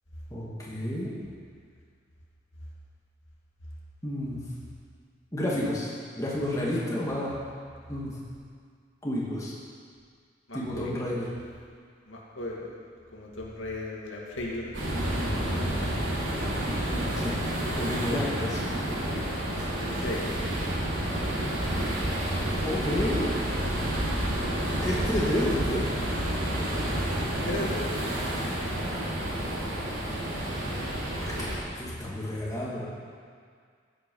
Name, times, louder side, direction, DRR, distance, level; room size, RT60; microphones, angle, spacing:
voice 1, 0.3-1.1 4.0-4.4 5.3-7.3 7.9-8.2 9.0-9.5 10.5-11.3 16.9-17.4 17.8-18.7 19.5-19.7 22.6-23.3 24.8-25.9 31.2-32.9, left 1 dB, 15° left, -6 dB, 2.4 m, -31 dB
voice 2, 10.5-11.1 12.1-12.7 13.1-15.7 20.0-20.2 27.4-28.0, left 2 dB, 90° left, -3 dB, 2.4 m, -36 dB
sound 1, 14.7-31.6, right 1 dB, 90° right, 3.2 m, -29 dB
15.5 x 8.7 x 5.6 m, 2.1 s
head